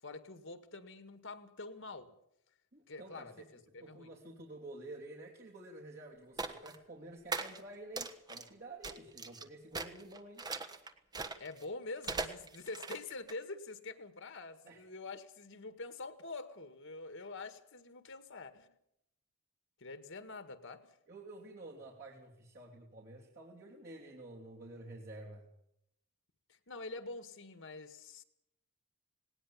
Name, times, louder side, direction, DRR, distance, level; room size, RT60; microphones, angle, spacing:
voice 1, 0.0-2.2 2.9-4.1 11.4-18.7 19.8-21.0 26.5-28.2, left 3 dB, 60° left, 10 dB, 1.9 m, -46 dB
voice 2, 2.7-3.4 3.8-10.5 14.7-14.8 21.1-25.5, right 2 dB, 45° right, -3 dB, 3.3 m, -50 dB
sound 1, 6.4-6.8 7.3-7.6 8.0-8.5 8.8-9.4 9.7-11.6 12.0-13.3, right 3 dB, 20° right, 1.3 m, -39 dB
19.0 x 19.0 x 7.4 m, 0.77 s
head